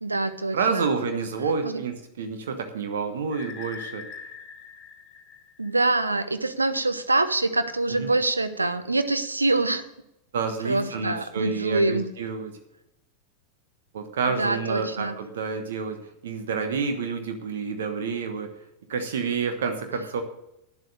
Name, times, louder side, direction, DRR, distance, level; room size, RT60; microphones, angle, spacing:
voice 1, 0.0-0.9 1.6-1.8 5.6-9.8 10.6-12.1 14.3-15.1, right 2 dB, 80° right, 10 dB, 0.8 m, -25 dB
voice 2, 0.5-4.0 8.0-8.1 10.3-12.5 13.9-18.5 18.9-20.2, right 5 dB, 60° right, 6 dB, 1.2 m, -29 dB
sound 1, 3.3-6.2, left 6 dB, 30° left, 1.4 m, -42 dB
9.8 x 7.8 x 6.5 m, 0.85 s
figure-of-eight pair, 90°, 0 cm